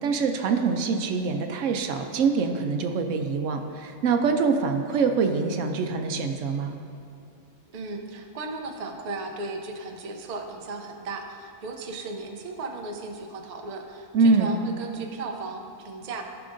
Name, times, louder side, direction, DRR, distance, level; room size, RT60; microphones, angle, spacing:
voice 1, 0.0-6.8 14.1-14.6, right 4 dB, 70° right, 6 dB, 0.9 m, -24 dB
voice 2, 7.7-16.2, right 3 dB, 50° right, 3 dB, 0.5 m, -36 dB
13.5 x 5.8 x 2.6 m, 2.7 s
omnidirectional pair, 1.4 m